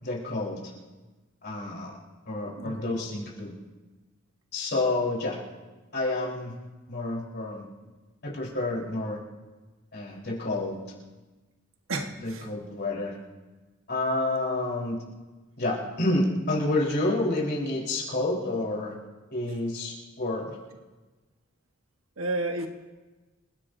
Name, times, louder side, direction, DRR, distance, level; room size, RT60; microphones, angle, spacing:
voice 1, 0.0-0.7 1.4-1.9 2.3-3.5 4.5-5.4 5.9-6.5 6.9-7.7 8.2-9.2 9.9-10.8 12.2-13.1 13.9-15.0 15.6-18.9 19.3-20.6, left 2 dB, 55° left, -3 dB, 3.8 m, -29 dB
voice 2, 2.5-3.0 11.9-12.5 22.2-22.7, right 2 dB, 75° right, 3 dB, 1.3 m, -32 dB
28.0 x 16.5 x 2.6 m, 1.2 s
head